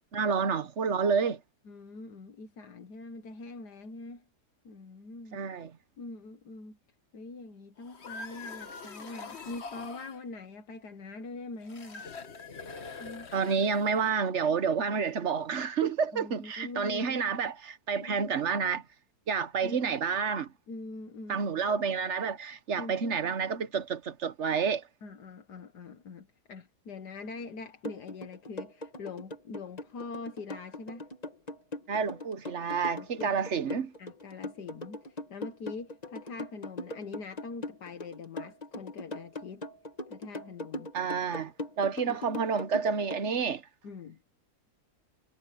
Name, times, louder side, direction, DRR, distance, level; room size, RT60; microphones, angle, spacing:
voice 1, 0.1-1.4 5.3-5.7 13.3-18.8 19.3-20.5 21.3-24.8 31.9-33.9 40.9-43.6, right 6 dB, 45° right, 1.4 m, -29 dB
voice 2, 1.7-4.2 4.6-5.4 6.0-6.8 7.1-12.1 13.0-13.3 16.1-17.2 18.0-18.3 19.6-19.9 20.7-21.5 22.8-23.0 25.0-31.1 32.0-32.1 33.0-33.3 33.6-33.7 34.0-39.7 40.1-40.9 42.1-42.2 43.8-44.2, left 3 dB, 80° left, 2.0 m, -43 dB
sound 1, 7.8-10.2 11.6-14.1, left 4 dB, 40° left, 1.6 m, -44 dB
sound 2, 27.8-43.2, left 1 dB, 25° left, 1.7 m, -40 dB
omnidirectional pair, 1.7 m